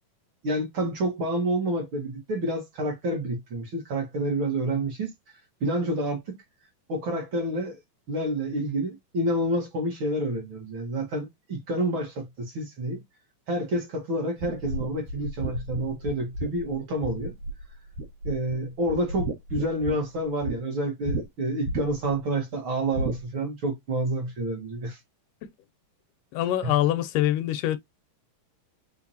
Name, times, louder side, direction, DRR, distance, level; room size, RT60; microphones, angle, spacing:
voice 1, 0.4-5.1 5.6-6.4 6.9-7.8 8.1-13.0 13.5-17.3 18.2-25.0 26.6-26.7, right 1 dB, 55° right, 1.4 m, -28 dB
sound 1, 14.4-17.6 18.0-18.6 18.9-20.6 21.1-21.2 21.6-22.2 22.9-23.2, right 1 dB, 80° right, 4.2 m, -32 dB
voice 2, 26.3-27.8, left 13 dB, 80° left, 1.9 m, -24 dB
7.2 x 2.5 x 2.7 m
omnidirectional pair, 4.0 m